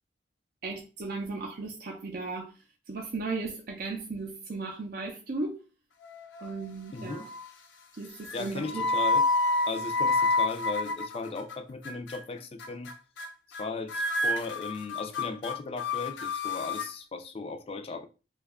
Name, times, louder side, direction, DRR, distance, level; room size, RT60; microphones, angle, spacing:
voice 1, 0.6-2.5 2.9-5.6 6.4-7.3 8.0-8.8, right 3 dB, 50° right, 0.5 m, -36 dB
sound 1, 6.0-6.6 7.0-7.5 8.2-11.5 11.8-12.2 12.6-12.9 13.2-13.3 13.5-13.6 13.9-16.9, left 2 dB, 85° left, 0.6 m, -29 dB
voice 2, 6.9-7.3 8.1-9.2 9.7-12.9 13.6-18.1, left 3 dB, 30° left, 0.4 m, -37 dB
2.9 x 2.3 x 3.5 m
head